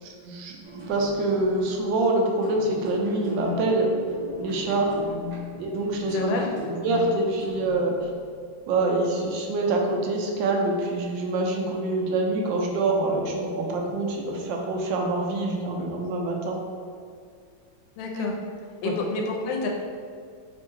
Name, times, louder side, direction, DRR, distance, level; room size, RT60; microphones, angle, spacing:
voice 1, 0.3-3.9 4.4-5.0 5.6-6.3 6.8-8.0 8.7-16.6 18.1-18.2 18.8-18.9, right 2 dB, 80° right, 1 dB, 1.3 m, -25 dB
sound 1, 0.6-8.3, left 3 dB, 25° right, 0.8 m, -38 dB
voice 2, 6.1-6.5 18.0-18.4 18.8-19.7, left 3 dB, 90° left, 0 dB, 1.3 m, -28 dB
3.6 x 2.2 x 4.4 m, 2.2 s
omnidirectional pair, 2.1 m